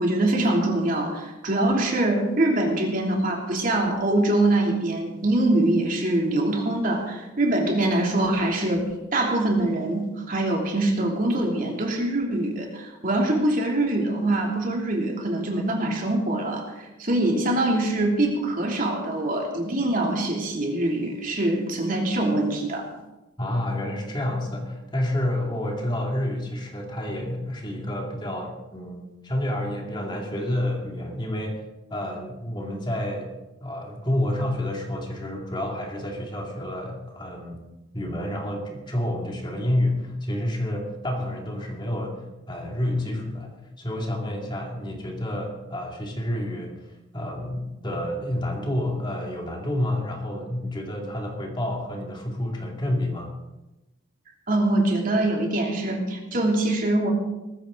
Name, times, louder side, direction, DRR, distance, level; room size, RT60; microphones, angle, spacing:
voice 1, 0.0-22.9 54.5-57.1, right 1 dB, 45° right, 0 dB, 3.0 m, -24 dB
voice 2, 23.4-31.6 31.9-33.3 33.6-37.6 37.9-42.2 42.5-43.5 43.8-46.7 47.1-53.3, left 1 dB, 25° left, 0 dB, 2.6 m, -29 dB
19.0 x 15.0 x 4.0 m, 1.0 s
head